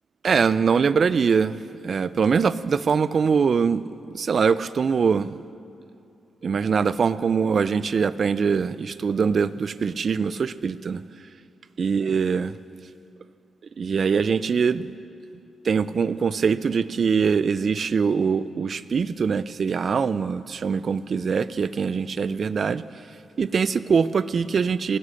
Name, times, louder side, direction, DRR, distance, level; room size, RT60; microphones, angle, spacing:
voice 1, 0.2-3.8 4.1-5.4 6.4-11.0 11.8-12.6 13.8-14.9 15.6-22.8 23.4-25.0, right 6 dB, 55° right, 17 dB, 0.4 m, -23 dB
20.0 x 7.5 x 6.5 m, 2.6 s
cardioid pair, 60°, 0 cm